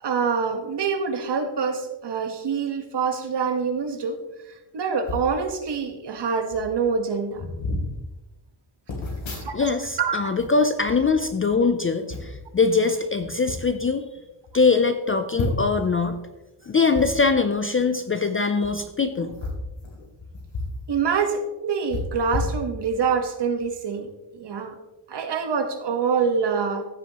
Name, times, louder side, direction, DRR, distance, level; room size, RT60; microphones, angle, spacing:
voice 1, 0.0-4.2 4.5-7.4 9.4-9.6 10.0-10.2 19.2-19.3 20.9-24.8 25.1-26.8, right 5 dB, 55° right, 7 dB, 1.3 m, -25 dB
sound 1, 5.0-5.3 6.2-6.3 6.5-6.8 7.3-7.9 8.9-9.9 10.2-11.6 12.1-12.4 13.2-13.6 14.1-14.2 14.5-14.6 15.3-15.8 16.9-17.1 18.5-18.7 19.3-20.8 21.1-21.2 21.9-23.1 23.6-23.8, left 2 dB, 65° left, 2.9 m, -32 dB
voice 2, 9.5-14.0 14.5-16.2 16.7-19.3, left 4 dB, 30° left, 8 dB, 0.4 m, -22 dB
15.0 x 7.5 x 2.9 m, 1.1 s
wide cardioid pair, 175°, 49 cm